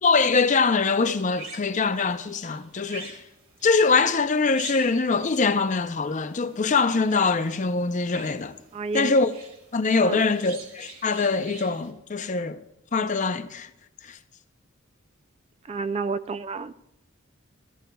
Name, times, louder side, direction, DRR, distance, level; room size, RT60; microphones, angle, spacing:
voice 1, 0.0-3.2 3.6-8.6 8.9-9.3 9.7-12.6 12.9-13.7 14.0-14.2, left 4 dB, 40° left, 0.5 m, -23 dB
sound 1, 0.9-11.9, right 3 dB, 85° right, 2.0 m, -46 dB
voice 2, 8.7-9.1 10.0-10.3 15.7-16.7, right 4 dB, 30° right, 0.3 m, -30 dB
15.5 x 13.0 x 2.3 m
head